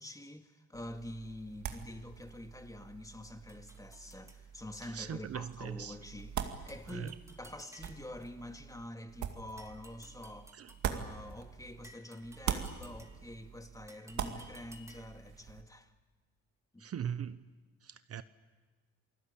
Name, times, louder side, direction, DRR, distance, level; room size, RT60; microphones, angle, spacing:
voice 1, 0.0-10.5 10.8-15.9 16.7-16.9, left 1 dB, 10° left, 2.1 m, -47 dB
sound 1, 0.7-11.9 12.2-15.6, right 8 dB, 70° right, 2.2 m, -43 dB
sound 2, 3.5-4.4 6.7-8.2 9.6-10.9 11.8-13.4 13.9-15.3, right 1 dB, 10° right, 2.9 m, -58 dB
voice 2, 4.8-6.0 6.9-7.1 10.5-10.7 16.8-17.4 17.8-18.2, right 8 dB, 50° right, 0.9 m, -40 dB
28.5 x 19.5 x 8.7 m
cardioid pair, 90°, 30 cm